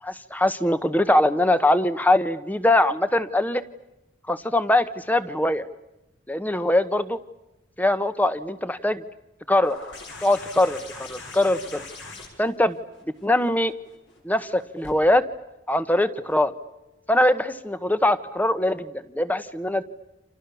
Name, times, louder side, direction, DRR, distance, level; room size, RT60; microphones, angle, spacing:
voice 1, 0.0-3.6 4.3-5.7 6.3-7.2 7.8-9.0 9.5-9.8 10.2-11.8 12.4-12.8 13.2-13.7 14.2-15.2 15.7-16.5 17.1-19.8, left 1 dB, 10° left, 13 dB, 1.0 m, -22 dB
sound 1, 9.6-14.9 16.3-16.4, left 3 dB, 65° left, 6.3 m, -42 dB
29.5 x 27.5 x 7.0 m, 0.95 s
head